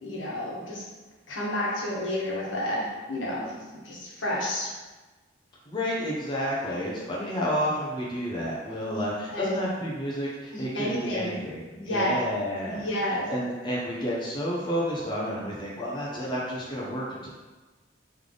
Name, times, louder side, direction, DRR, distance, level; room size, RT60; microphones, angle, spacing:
voice 1, 0.0-0.8 1.3-4.7 8.9-9.0 9.3-9.6 10.5-11.4 11.8-12.2 12.6-13.3, left 1 dB, 80° left, -5 dB, 1.2 m, -30 dB
voice 2, 5.7-12.8 13.3-17.3, equal, 25° left, -6 dB, 0.7 m, -30 dB
3.5 x 3.3 x 3.7 m, 1.2 s
head